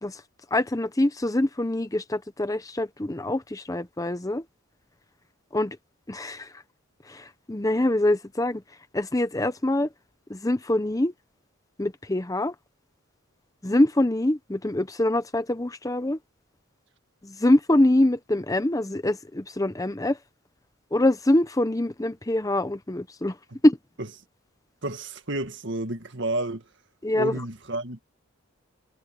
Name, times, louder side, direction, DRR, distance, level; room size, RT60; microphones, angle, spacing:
voice 1, 0.5-4.4 5.5-5.8 6.1-6.6 7.1-8.6 8.9-9.9 10.3-11.1 11.8-12.5 13.6-16.2 17.2-20.2 20.9-23.4 23.6-23.8 27.0-27.4, left 1 dB, 15° left, 0.7 m, -24 dB
voice 2, 24.8-26.6 27.1-28.0, right 2 dB, 55° right, 2.0 m, -30 dB
head